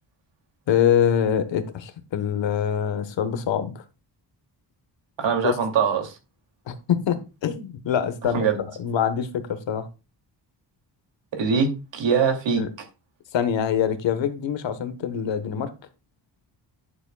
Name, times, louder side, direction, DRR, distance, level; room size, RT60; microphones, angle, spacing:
voice 1, 0.7-3.8 5.4-5.5 6.7-9.9 12.6-12.7 13.3-15.7, left 8 dB, 80° left, 1.3 m, -24 dB
voice 2, 5.2-6.1 8.3-8.6 11.3-12.6, right 6 dB, 80° right, 2.7 m, -22 dB
11.0 x 7.3 x 2.3 m
wide cardioid pair, 140°, 44 cm